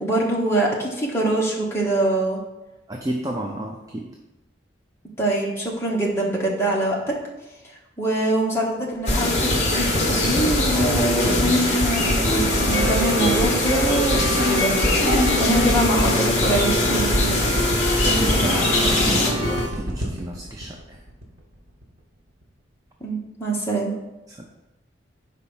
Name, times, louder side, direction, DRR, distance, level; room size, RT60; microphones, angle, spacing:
voice 1, 0.0-2.4 5.2-7.1 8.0-14.7 15.1-17.6 23.0-23.9, right 1 dB, 15° left, -3 dB, 1.1 m, -24 dB
voice 2, 2.9-4.1 18.2-21.0 24.3-24.5, right 1 dB, 20° right, 0 dB, 0.4 m, -31 dB
sound 1, 9.1-19.3, left 2 dB, 35° left, 1.1 m, -23 dB
sound 2, 9.1-21.4 21.8-21.9, equal, 60° right, 1.3 m, -26 dB
sound 3, 12.3-19.7, left 1 dB, 60° left, 1.6 m, -26 dB
5.3 x 4.2 x 5.4 m, 1.0 s
head